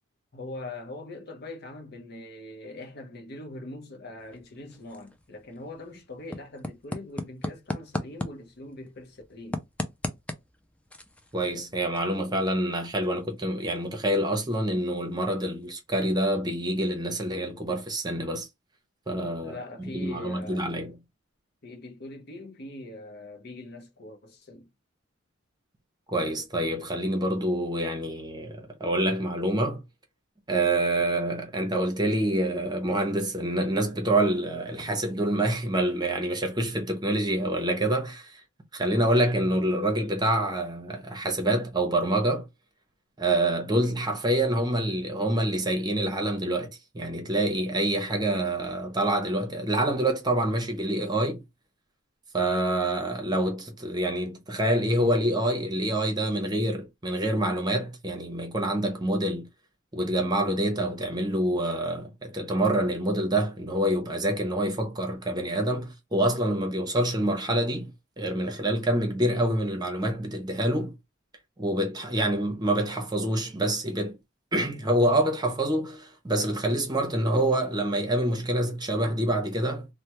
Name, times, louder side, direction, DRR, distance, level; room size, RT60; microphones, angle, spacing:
voice 1, 0.3-9.6 19.4-20.9 21.6-24.7, left 2 dB, 55° left, 0.8 m, -42 dB
sound 1, 4.2-15.9, left 1 dB, 5° left, 0.4 m, -40 dB
voice 2, 11.3-18.5 19.1-20.9 26.1-29.8 30.5-38.4 38.7-42.5 43.2-51.4 52.3-59.4 59.9-67.9 68.2-70.9 71.6-74.2 74.5-79.9, right 1 dB, 20° right, 0.8 m, -26 dB
3.3 x 2.1 x 2.9 m
head